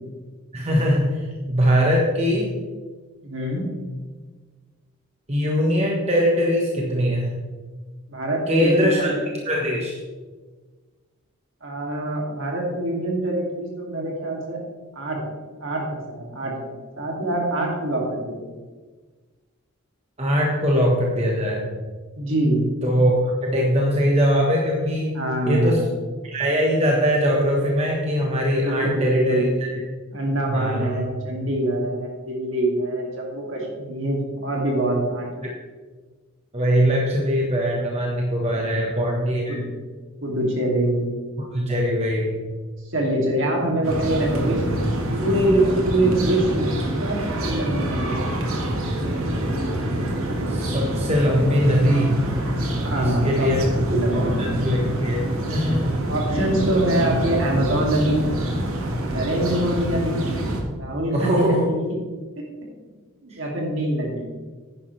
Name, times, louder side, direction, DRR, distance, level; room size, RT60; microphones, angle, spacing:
voice 1, 0.5-2.5 5.3-7.3 8.5-9.1 9.4-10.0 20.2-21.7 22.8-25.1 25.5-25.8 26.2-29.8 30.5-31.1 36.5-39.6 41.5-42.4 50.5-52.2 52.9-53.7 54.1-55.2 55.5-55.9 56.3-56.4 61.1-61.7 63.3-63.4, equal, 30° right, -2 dB, 1.2 m, -21 dB
voice 2, 3.2-3.7 8.1-9.3 11.6-14.6 14.9-15.2 15.6-18.5 22.2-22.6 25.1-25.8 28.5-29.5 30.1-35.3 38.4-38.9 39.5-39.7 40.2-41.1 42.9-48.7 52.8-53.6 53.9-54.6 56.1-58.3 59.1-60.3 60.8-61.8 62.4-62.5 63.2-64.3, right 1 dB, 65° right, -1 dB, 2.6 m, -24 dB
sound 1, 43.8-60.6, right 1 dB, 80° right, 1.7 m, -26 dB
10.5 x 10.0 x 3.3 m, 1.4 s
head